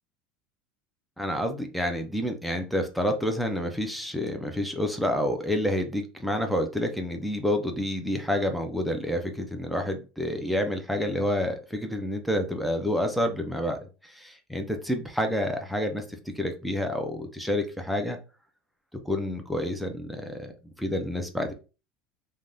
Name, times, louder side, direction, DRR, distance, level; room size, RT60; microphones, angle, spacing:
voice 1, 1.2-18.2 18.9-20.5 20.8-21.5, left 1 dB, ahead, 5 dB, 0.3 m, -29 dB
3.3 x 2.2 x 2.5 m, 0.32 s
cardioid pair, 180°, 3 cm